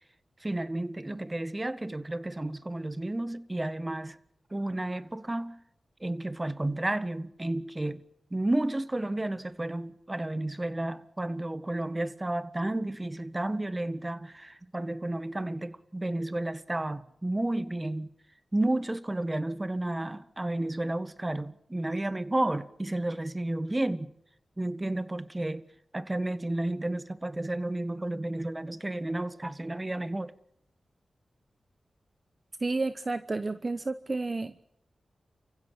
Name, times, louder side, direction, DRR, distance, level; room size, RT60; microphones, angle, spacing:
voice 1, 0.4-4.2 4.5-5.6 6.0-8.0 8.3-18.1 18.5-24.1 24.6-25.6 25.9-30.3, right 1 dB, 25° right, 1.6 m, -32 dB
voice 2, 32.6-34.6, right 3 dB, 40° right, 1.0 m, -31 dB
30.0 x 15.5 x 8.7 m
cardioid pair, 50°, 0 cm